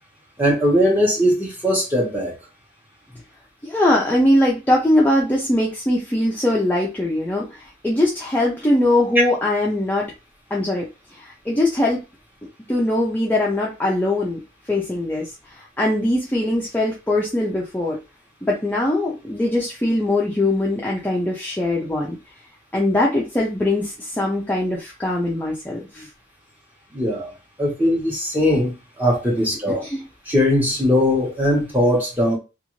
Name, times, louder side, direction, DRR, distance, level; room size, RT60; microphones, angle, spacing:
voice 1, 0.4-2.3 26.9-27.3 27.6-29.8 30.3-32.4, equal, 10° right, 0.9 m, -20 dB
voice 2, 3.6-10.1 10.5-12.0 12.7-14.4 14.7-18.0 18.4-22.2 22.7-26.1 29.7-30.0, left 1 dB, 10° left, 0.4 m, -21 dB
2.5 x 2.4 x 3.0 m
head